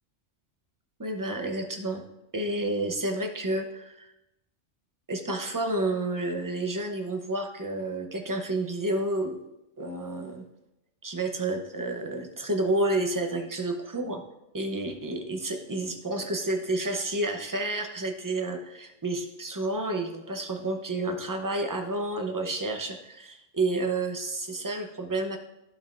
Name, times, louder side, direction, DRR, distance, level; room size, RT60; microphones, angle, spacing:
voice 1, 1.0-2.0 2.3-4.1 5.1-9.4 9.8-10.4 11.0-14.2 14.5-25.4, right 2 dB, 20° right, 4 dB, 0.7 m, -30 dB
14.0 x 5.6 x 2.6 m, 0.89 s
omnidirectional pair, 1.2 m